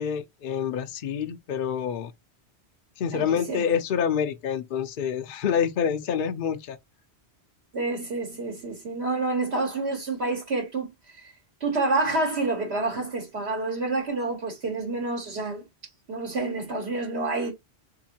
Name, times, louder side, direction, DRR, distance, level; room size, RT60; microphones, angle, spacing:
voice 1, 0.0-2.1 3.0-6.8, left 8 dB, 60° left, 0.6 m, -27 dB
voice 2, 3.1-3.7 7.7-11.3 11.6-15.6 16.1-17.5, right 3 dB, 75° right, 1.3 m, -28 dB
3.5 x 2.8 x 2.7 m
omnidirectional pair, 1.1 m